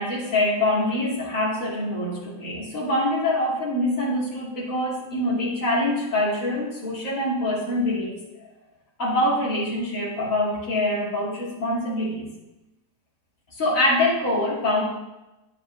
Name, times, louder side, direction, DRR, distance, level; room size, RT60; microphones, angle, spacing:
voice 1, 0.0-8.2 9.0-12.3 13.5-14.8, left 1 dB, 50° left, -6 dB, 2.6 m, -24 dB
9.6 x 7.9 x 2.6 m, 0.99 s
omnidirectional pair, 1.8 m